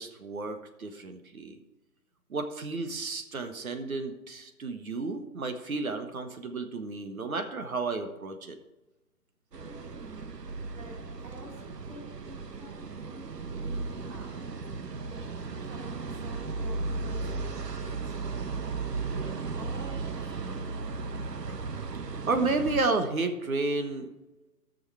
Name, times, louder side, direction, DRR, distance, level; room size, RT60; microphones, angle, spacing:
voice 1, 0.0-1.5 2.3-8.6 21.5-21.6 22.3-24.1, right 3 dB, 60° right, 7 dB, 1.4 m, -32 dB
sound 1, 9.5-22.8, right 4 dB, 85° right, 1.1 m, -36 dB
voice 2, 9.6-10.3 10.7-14.4 15.1-18.5 19.1-19.3 19.5-21.0, right 1 dB, 25° right, -2 dB, 3.7 m, -49 dB
14.0 x 6.5 x 4.7 m, 1.0 s
figure-of-eight pair, 155°, 47 cm